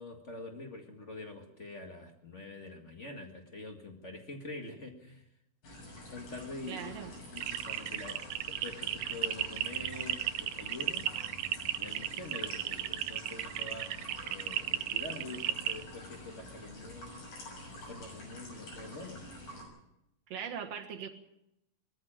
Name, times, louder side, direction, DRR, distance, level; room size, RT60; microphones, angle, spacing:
voice 1, 0.0-5.3 6.1-11.1 11.8-17.2 17.7-19.2, left 2 dB, 40° left, 4 dB, 0.9 m, -45 dB
sound 1, 5.6-19.6, left 1 dB, 60° left, 8.3 m, -48 dB
voice 2, 6.7-7.1 20.3-21.1, right 7 dB, 55° right, 3 dB, 2.2 m, -40 dB
sound 2, 7.4-15.8, right 13 dB, 75° right, 2.1 m, -34 dB
20.5 x 14.0 x 8.9 m, 0.84 s
omnidirectional pair, 4.5 m